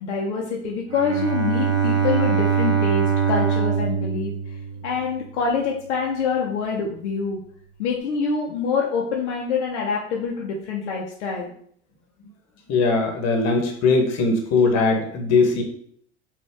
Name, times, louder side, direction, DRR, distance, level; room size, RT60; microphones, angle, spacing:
voice 1, 0.0-4.3 4.8-7.4 7.8-11.5, left 5 dB, 70° left, -2 dB, 0.9 m, -25 dB
Bowed string instrument, 0.9-5.2, right 7 dB, 40° right, 1.3 m, -23 dB
voice 2, 12.7-15.6, left 4 dB, 45° left, 2 dB, 1.3 m, -20 dB
4.2 x 2.7 x 3.5 m, 0.62 s
hypercardioid pair, 80°, 36 cm